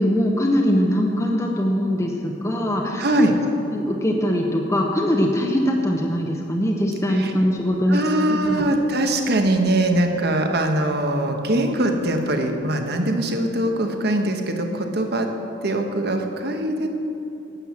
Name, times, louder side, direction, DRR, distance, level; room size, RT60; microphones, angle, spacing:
voice 1, 0.0-3.3 3.7-8.6, equal, 15° left, 0 dB, 0.8 m, -22 dB
voice 2, 3.0-3.4 7.1-7.3 7.9-15.3 15.6-16.9, right 1 dB, 55° right, 4 dB, 1.2 m, -22 dB
11.0 x 7.9 x 7.2 m, 2.9 s
head